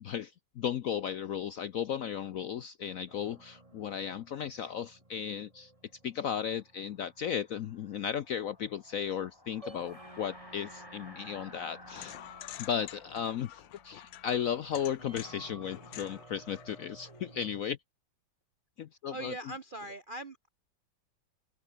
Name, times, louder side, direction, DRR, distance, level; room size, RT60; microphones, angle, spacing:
voice 1, 0.0-5.7 6.0-12.1 12.6-17.8 18.8-19.3, left 8 dB, 65° left, 0.8 m, -35 dB
sound 1, 3.1-17.6, right 2 dB, 15° right, 2.9 m, -55 dB
sound 2, 6.6-15.2, left 2 dB, 10° left, 1.8 m, -55 dB
sound 3, 11.9-17.5, left 14 dB, 85° left, 1.5 m, -49 dB
voice 2, 19.1-20.5, right 1 dB, 45° right, 0.6 m, -41 dB
open air
omnidirectional pair, 2.1 m